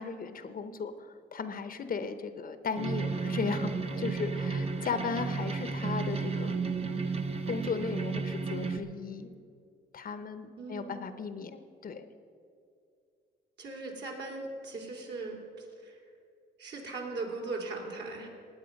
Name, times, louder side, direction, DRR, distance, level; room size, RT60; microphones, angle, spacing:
voice 1, 0.0-3.7 4.0-6.5 7.5-9.3 9.9-12.1, left 5 dB, 45° left, 10 dB, 0.9 m, -36 dB
sound 1, 2.7-8.8, right 4 dB, 30° right, 1.0 m, -33 dB
voice 2, 10.6-11.0 13.6-16.0 16.6-18.3, right 3 dB, 60° right, 1 dB, 3.1 m, -39 dB
18.0 x 9.0 x 5.3 m, 2.4 s
cardioid pair, 90°, 20 cm